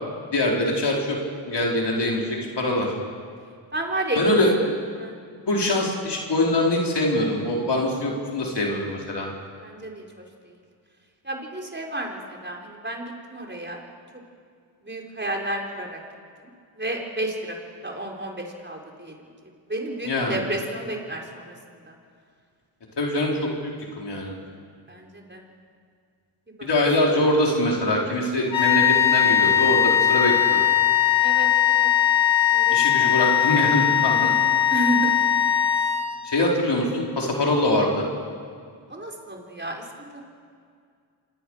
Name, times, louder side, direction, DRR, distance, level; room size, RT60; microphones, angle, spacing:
voice 1, 0.3-1.2 1.5-2.9 4.1-4.5 5.5-9.3 20.0-20.4 23.0-23.7 24.0-24.3 26.6-30.7 32.7-34.3 36.2-38.0, left 1 dB, 60° left, -2 dB, 5.0 m, -23 dB
voice 2, 3.7-4.2 4.6-5.1 9.6-10.2 11.2-13.8 14.8-16.0 16.7-17.6 17.8-19.1 19.7-21.5 21.9-22.0 24.9-25.4 26.6-26.7 31.2-31.9 32.5-33.5 34.7-35.2 38.9-39.8 40.1-40.2, right 1 dB, 25° right, 0 dB, 4.8 m, -31 dB
sound 1, 28.5-36.4, left 10 dB, 80° left, 2.7 m, -20 dB
26.0 x 18.5 x 6.7 m, 2.2 s
cardioid pair, 50°, 46 cm